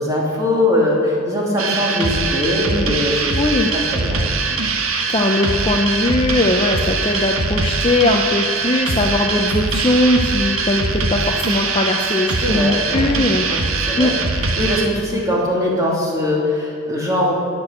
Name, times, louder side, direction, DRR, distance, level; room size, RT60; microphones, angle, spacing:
voice 1, 0.0-3.4 3.7-4.6 12.4-13.1 13.5-14.1 14.4-17.3, left 1 dB, 15° right, -4 dB, 2.8 m, -21 dB
sound 1, 1.6-14.8, right 3 dB, 70° right, 1.4 m, -22 dB
voice 2, 3.4-3.7 4.9-13.5 14.0-14.1, left 2 dB, 25° left, 2 dB, 0.6 m, -19 dB
18.0 x 6.2 x 8.5 m, 2.3 s
head